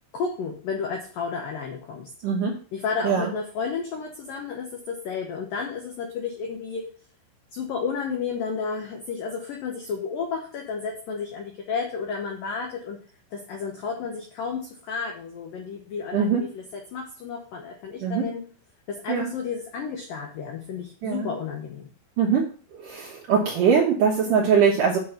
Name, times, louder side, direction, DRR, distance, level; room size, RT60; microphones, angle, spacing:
voice 1, 0.1-2.1 2.7-6.8 7.5-13.0 13.3-18.4 18.9-21.9, left 5 dB, 85° left, 2 dB, 1.9 m, -32 dB
voice 2, 16.1-16.4 18.0-18.3 19.1-19.3 21.0-21.3 22.2-22.5 22.8-25.0, right 6 dB, 85° right, -2 dB, 1.8 m, -22 dB
8.5 x 4.4 x 6.4 m, 0.40 s
omnidirectional pair, 5.8 m